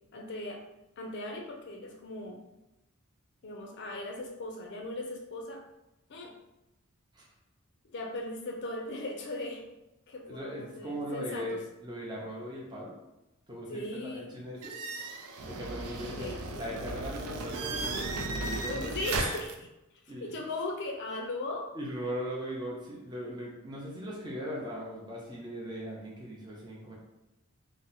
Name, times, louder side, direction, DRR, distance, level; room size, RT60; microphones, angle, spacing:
voice 1, 0.1-0.6 1.0-2.4 3.4-5.6 6.1-6.3 7.8-9.6 10.1-11.6 13.7-14.3 15.9-16.7 18.7-19.7 20.0-21.7, left 2 dB, 50° left, 1 dB, 0.4 m, -38 dB
voice 2, 10.3-11.6 11.8-12.9 13.5-14.8 15.4-16.3 16.5-19.0 20.1-20.3 21.7-26.9, equal, 20° right, -4 dB, 0.5 m, -39 dB
ballon platzt, 14.6-19.5, right 3 dB, 90° right, 0.4 m, -35 dB
2.7 x 2.0 x 3.9 m, 0.95 s
head